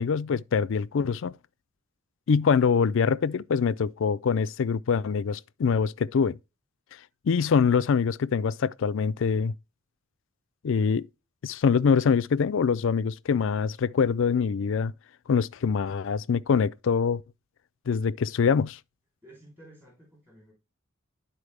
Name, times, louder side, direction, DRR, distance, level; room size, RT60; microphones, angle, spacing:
voice 1, 0.0-1.4 2.3-6.4 7.3-9.5 10.6-11.1 11.4-14.9 15.3-17.2 17.9-18.8, left 6 dB, 65° left, 0.4 m, -24 dB
voice 2, 2.3-2.7 19.2-20.5, right 1 dB, 10° right, 3.0 m, -53 dB
11.5 x 4.3 x 3.3 m
head